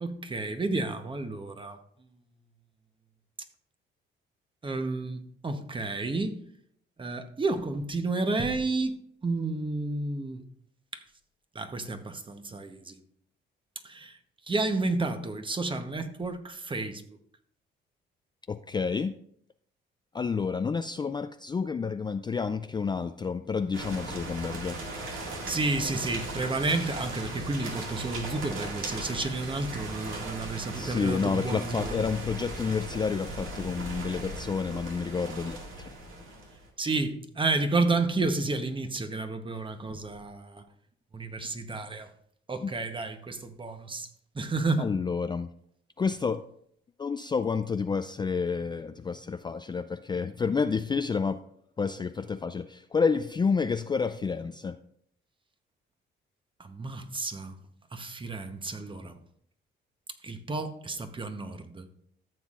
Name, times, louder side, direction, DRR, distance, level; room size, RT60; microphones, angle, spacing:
voice 1, 0.0-1.8 4.6-6.4 7.0-9.0 9.2-10.4 10.9-11.0 11.5-13.0 13.8-14.2 14.5-17.0 25.1-31.9 36.8-40.6 41.1-42.1 42.5-44.1 44.3-44.9 56.6-57.5 57.9-59.1 60.2-61.9, right 3 dB, 25° right, 1.0 m, -31 dB
voice 2, 18.5-19.1 20.1-24.8 30.7-35.9 42.6-42.7 44.8-45.5 46.0-46.4 47.0-51.4 51.8-54.8, left 5 dB, 20° left, 0.3 m, -29 dB
sound 1, 23.7-36.7, right 2 dB, 90° right, 2.1 m, -38 dB
13.5 x 7.2 x 2.5 m
cardioid pair, 90°, 20 cm